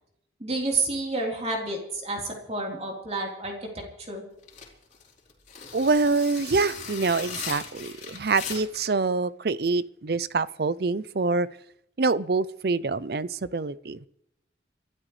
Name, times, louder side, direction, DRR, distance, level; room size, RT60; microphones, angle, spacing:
voice 1, 0.4-3.7 4.0-4.2, right 2 dB, 35° right, -1 dB, 3.8 m, -30 dB
sound 1, 4.4-8.9, left 6 dB, 40° left, 3.7 m, -38 dB
voice 2, 5.7-11.5 12.0-14.1, right 3 dB, 55° right, 17 dB, 0.5 m, -25 dB
28.0 x 13.0 x 3.3 m, 0.77 s
head